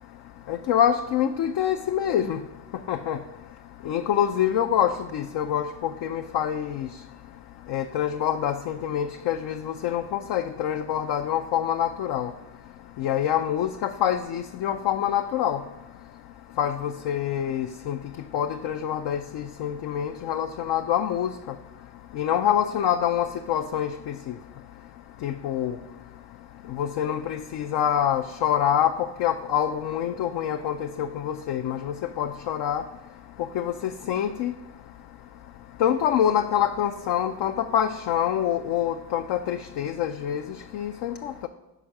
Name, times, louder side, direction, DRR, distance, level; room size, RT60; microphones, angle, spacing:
voice 1, 0.5-2.4 2.9-3.2 3.9-6.9 7.7-12.3 13.0-15.6 16.6-18.0 18.3-21.3 22.2-24.3 25.2-25.8 26.7-32.8 33.5-34.6 35.8-40.4 40.7-41.5, left 10 dB, 55° left, 7 dB, 0.5 m, -26 dB
5.0 x 4.5 x 5.9 m, 1.0 s
hypercardioid pair, 45°, 48 cm